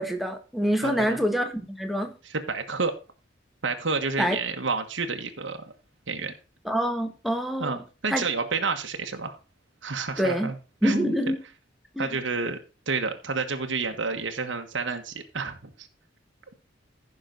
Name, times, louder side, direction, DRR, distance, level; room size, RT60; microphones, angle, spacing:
voice 1, 0.0-2.1 4.2-4.4 6.6-7.8 8.1-8.2 10.2-10.5 10.8-11.4 11.9-12.2, equal, ahead, 1.5 m, -26 dB
voice 2, 0.8-1.2 2.2-2.9 3.6-5.7 6.1-6.3 7.6-9.4 9.8-10.5 10.8-11.3 12.0-12.6 12.9-15.9, right 4 dB, 80° right, 1.4 m, -30 dB
15.0 x 6.2 x 3.9 m
head